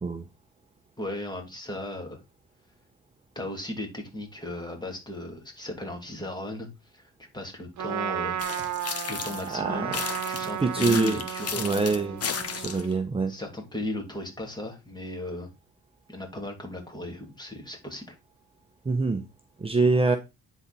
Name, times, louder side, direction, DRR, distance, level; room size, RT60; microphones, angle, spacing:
voice 1, 1.0-2.2 3.3-6.7 6.9-8.4 9.1-10.0 10.3-11.9 12.7-12.9 13.3-15.5 16.1-18.1, left 1 dB, 15° left, 2 dB, 2.8 m, -36 dB
Trumpet, 7.8-13.0, right 10 dB, 70° right, 1.0 m, -34 dB
sound 1, 8.4-9.5 9.9-12.9, left 6 dB, 50° left, 1.4 m, -34 dB
voice 2, 9.5-10.0 10.6-11.2 11.6-12.2 12.5-13.3 18.8-19.2 19.6-20.2, right 3 dB, 20° right, 7 dB, 0.8 m, -24 dB
9.7 x 4.1 x 4.2 m, 0.24 s
cardioid pair, 90°, 30 cm